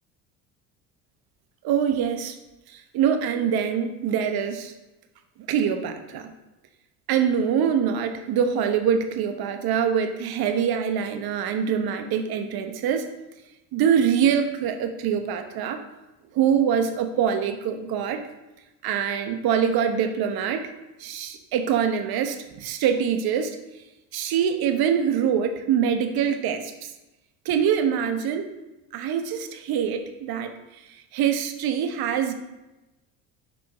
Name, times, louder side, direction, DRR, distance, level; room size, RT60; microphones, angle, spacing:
voice 1, 1.6-2.4 2.7-4.7 5.5-6.3 7.1-13.1 13.7-15.8 16.3-18.2 18.8-20.7 21.0-23.6 24.1-26.9 27.4-28.5 28.9-30.5 31.1-32.3, right 8 dB, 60° right, 7 dB, 1.0 m, -24 dB
5.6 x 4.9 x 4.7 m, 1.0 s
hypercardioid pair, 70°, 43 cm